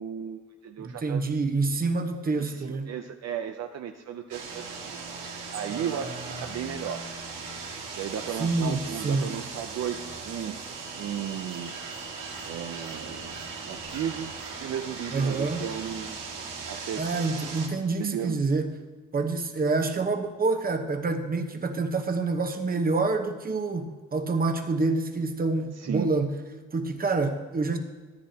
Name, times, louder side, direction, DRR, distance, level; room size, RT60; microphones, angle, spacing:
voice 1, 0.0-1.2 2.4-5.0 5.5-7.0 7.9-10.6 11.0-11.7 12.4-14.3 14.6-16.2 16.7-17.1 18.0-18.4 25.7-26.1, right 9 dB, 55° right, 6 dB, 0.6 m, -35 dB
voice 2, 0.8-2.9 5.7-6.5 8.4-9.3 15.1-15.6 17.0-18.8 19.1-26.3 26.7-27.8, right 3 dB, 30° right, 5 dB, 1.1 m, -27 dB
sound 1, 4.3-17.7, right 4 dB, 85° right, 1.9 m, -38 dB
14.0 x 9.5 x 2.9 m, 1.3 s
cardioid pair, 105°, 31 cm